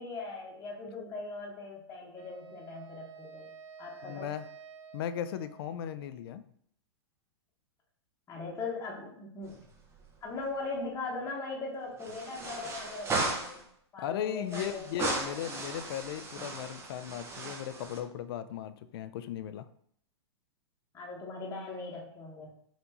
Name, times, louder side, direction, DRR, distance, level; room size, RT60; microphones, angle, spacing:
voice 1, 0.0-3.5 3.8-4.3 8.3-9.6 10.2-13.6 13.9-15.4 20.9-22.5, left 3 dB, 20° left, -4 dB, 1.1 m, -40 dB
Wind instrument woodwind instrument, 2.2-6.3, right 6 dB, 75° right, 0.5 m, -51 dB
voice 2, 4.0-4.4 4.9-6.5 14.0-19.7, left 10 dB, 55° left, 12 dB, 0.4 m, -37 dB
sound 1, 9.4-10.2 10.4-10.5 12.0-13.6 14.5-18.0, right 3 dB, 15° right, 0.8 m, -36 dB
4.4 x 2.6 x 4.1 m, 0.67 s
hypercardioid pair, 115°, 15 cm